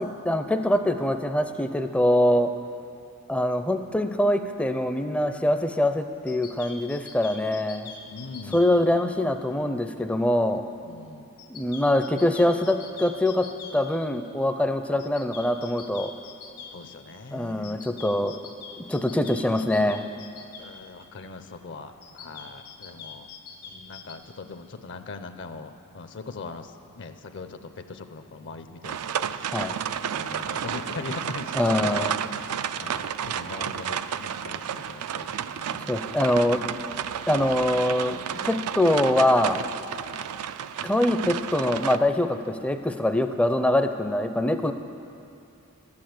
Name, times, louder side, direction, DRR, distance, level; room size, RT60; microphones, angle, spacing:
voice 1, 0.0-2.5 3.3-7.9 8.5-10.6 11.5-16.1 17.3-18.4 18.9-20.0 29.5-29.7 31.5-32.1 35.9-36.7 37.3-38.2 38.4-39.6 40.8-44.7, left 1 dB, 5° left, 8 dB, 0.4 m, -24 dB
sound 1, 6.3-8.7 11.4-13.8 15.0-16.7 17.6-20.7 22.0-24.1, left 6 dB, 90° left, 1.3 m, -43 dB
voice 2, 8.1-9.0 10.8-11.3 16.7-17.8 20.6-23.3 23.6-36.0, left 3 dB, 55° left, 8 dB, 0.6 m, -41 dB
sound 2, 28.8-42.0, right 8 dB, 85° right, 0.4 m, -31 dB
12.0 x 8.7 x 7.8 m, 2.6 s
head